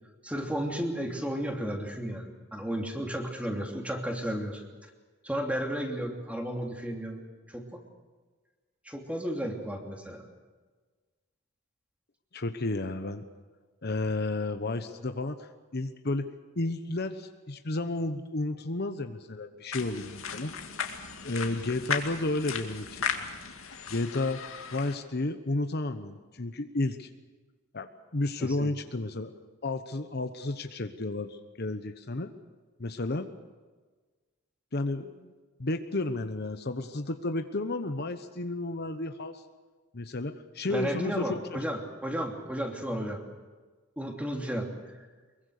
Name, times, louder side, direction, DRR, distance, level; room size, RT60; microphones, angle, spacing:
voice 1, 0.2-4.6 5.2-7.2 7.5-7.6 8.8-10.2 28.4-28.7 40.7-43.2 44.0-45.1, equal, 5° right, 2 dB, 2.9 m, -33 dB
voice 2, 12.3-13.2 13.8-20.6 21.2-23.4 23.9-24.4 24.7-27.1 27.7-29.3 29.6-32.3 32.8-33.3 34.7-35.3 35.6-39.4 39.9-41.6, left 2 dB, 50° left, 8 dB, 1.0 m, -32 dB
sound 1, 19.7-25.0, left 6 dB, 70° left, 2.3 m, -36 dB
24.0 x 22.5 x 6.7 m, 1.4 s
head